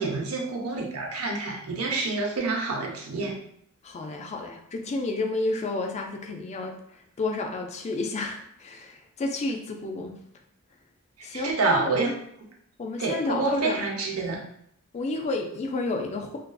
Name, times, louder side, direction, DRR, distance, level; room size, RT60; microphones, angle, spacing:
voice 1, 0.0-3.3 11.3-12.1 13.0-14.4, right 3 dB, 80° right, -1 dB, 0.6 m, -27 dB
voice 2, 3.8-6.8 7.2-10.2 11.2-12.1 12.8-13.8 14.9-16.4, left 2 dB, 30° left, 3 dB, 0.3 m, -31 dB
2.4 x 2.4 x 2.2 m, 0.71 s
head